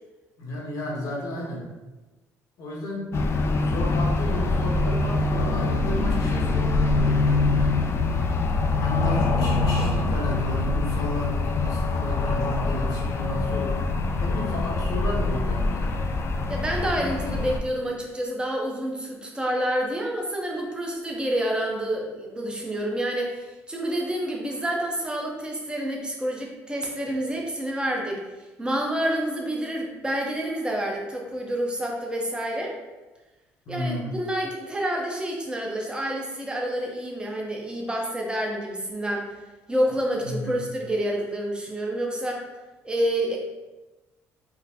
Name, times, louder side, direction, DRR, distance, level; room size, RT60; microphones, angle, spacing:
voice 1, 0.4-1.7 2.6-3.2 3.5-7.7 8.8-13.8 14.2-16.0 33.7-34.2 40.2-40.6, left 1 dB, 70° left, -3 dB, 0.9 m, -33 dB
sound 1, 3.1-17.6, left 3 dB, 40° left, 0.3 m, -24 dB
voice 2, 16.5-28.2 28.6-32.8 33.7-39.3 39.7-42.4 42.8-43.4, right 1 dB, 15° right, -1 dB, 0.7 m, -28 dB
3.8 x 2.1 x 2.7 m, 1.1 s
supercardioid pair, 80°, 6 cm